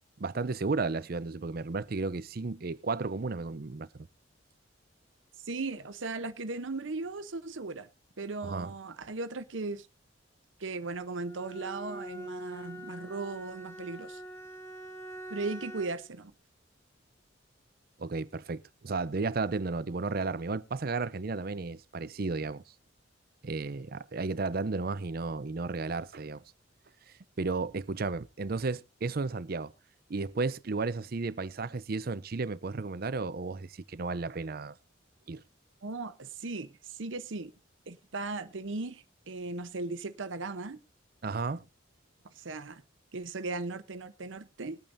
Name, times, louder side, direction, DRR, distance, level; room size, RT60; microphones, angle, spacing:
voice 1, 0.2-4.1 8.4-8.7 18.0-22.6 23.4-26.4 27.4-29.7 30.1-34.8 35.3-35.4 41.2-41.6, right 3 dB, 50° right, 0.6 m, -33 dB
voice 2, 5.4-7.9 8.2-9.9 10.6-14.2 15.3-16.3 35.8-37.5 37.9-40.8 42.3-42.8 43.1-44.8, right 3 dB, 75° right, 0.8 m, -37 dB
Bowed string instrument, 11.2-16.1, right 1 dB, 10° left, 2.0 m, -44 dB
21.5 x 8.8 x 2.6 m
head